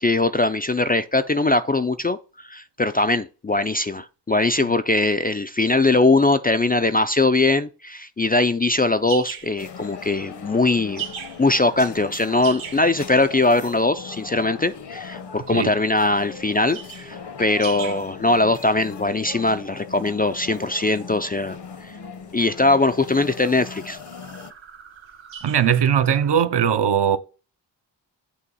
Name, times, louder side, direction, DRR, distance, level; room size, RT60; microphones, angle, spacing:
voice 1, 0.0-11.0 11.4-21.9 22.3-24.0, left 2 dB, 20° left, 0.3 m, -21 dB
sound 1, 8.6-26.4, right 8 dB, 80° right, 1.1 m, -41 dB
sound 2, 9.6-24.5, left 6 dB, 60° left, 0.9 m, -39 dB
voice 2, 25.4-27.2, right 8 dB, 60° right, 0.7 m, -19 dB
8.4 x 2.9 x 5.4 m
wide cardioid pair, 80°, 46 cm